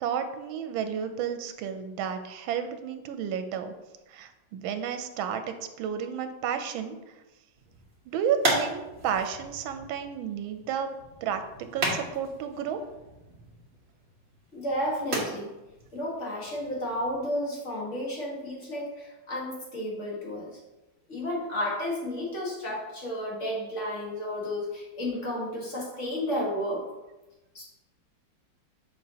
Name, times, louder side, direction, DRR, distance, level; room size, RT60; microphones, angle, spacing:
voice 1, 0.0-3.7 4.1-7.0 8.1-10.9 11.2-11.4 11.7-12.8, right 8 dB, 85° right, 8 dB, 1.4 m, -32 dB
sound 1, 7.5-17.3, right 2 dB, 35° right, 1.3 m, -36 dB
voice 2, 14.5-15.5 15.9-20.6 21.1-26.8 27.6-27.7, left 1 dB, 40° left, -3 dB, 1.8 m, -32 dB
6.6 x 5.2 x 2.8 m, 1.0 s
omnidirectional pair, 2.1 m